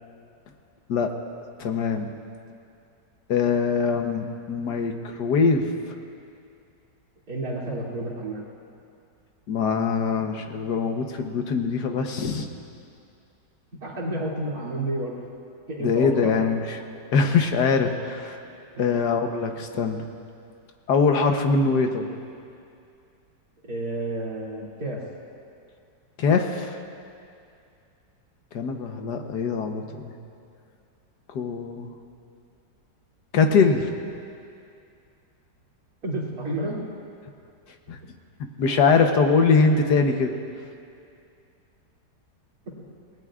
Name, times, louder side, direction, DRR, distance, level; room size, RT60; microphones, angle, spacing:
voice 1, 1.6-2.1 3.3-5.7 9.5-12.5 15.8-16.8 17.1-18.4 18.8-20.0 20.9-22.1 26.2-26.8 28.5-30.1 31.3-31.9 33.3-33.9 37.9-38.0 38.6-40.3, left 5 dB, 70° left, 5 dB, 1.5 m, -22 dB
voice 2, 7.3-8.4 13.7-15.2 15.7-16.4 18.7-18.9 23.6-25.0 36.0-36.9 42.7-42.8, right 1 dB, 55° right, -6 dB, 3.4 m, -30 dB
29.0 x 18.5 x 2.5 m, 2.5 s
omnidirectional pair, 1.9 m